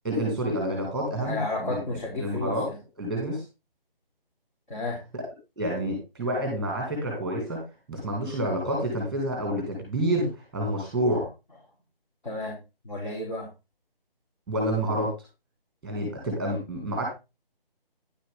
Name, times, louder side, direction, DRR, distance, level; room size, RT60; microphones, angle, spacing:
voice 1, 0.0-1.8 2.2-2.7 3.0-3.4 5.6-7.6 7.9-11.3 14.5-15.1 15.8-17.1, right 1 dB, ahead, 0 dB, 2.1 m, -28 dB
voice 2, 1.2-2.8 4.7-5.0 12.2-12.6 12.8-13.5, left 2 dB, 55° left, -3 dB, 4.0 m, -32 dB
10.5 x 7.5 x 3.7 m, 0.27 s
figure-of-eight pair, 170°, 30 cm